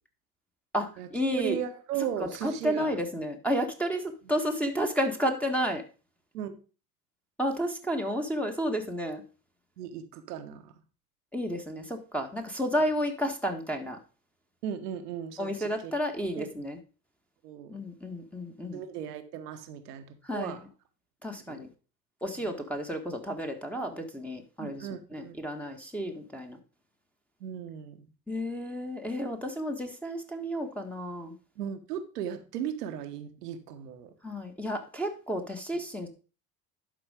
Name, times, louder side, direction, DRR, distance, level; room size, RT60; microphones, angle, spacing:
voice 1, 0.7-1.6 2.2-5.8 7.4-9.2 11.3-14.0 15.4-16.8 17.7-18.8 20.2-20.6 21.2-21.7 22.2-26.6 28.3-31.3 34.2-36.1, equal, 5° left, 1 dB, 1.5 m, -31 dB
voice 2, 1.3-2.9 6.3-6.5 9.8-10.7 14.6-15.9 16.3-16.5 17.4-17.7 18.7-20.6 21.5-21.7 24.6-25.4 27.4-28.1 31.6-34.1, right 9 dB, 75° right, 8 dB, 1.3 m, -36 dB
11.5 x 4.4 x 4.9 m, 0.35 s
hypercardioid pair, 65°, 47 cm